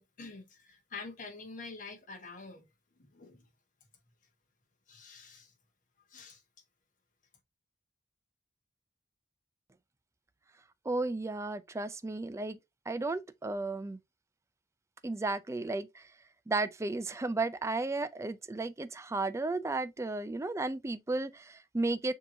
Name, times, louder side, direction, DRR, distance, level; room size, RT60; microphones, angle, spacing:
voice 1, 0.0-2.7 3.0-3.5 4.9-5.5 6.1-6.4, left 4 dB, 45° left, 1.1 m, -47 dB
voice 2, 10.9-12.6 12.9-14.0 15.0-16.0 16.5-22.1, right 2 dB, 15° right, 0.4 m, -34 dB
6.8 x 2.9 x 2.6 m
head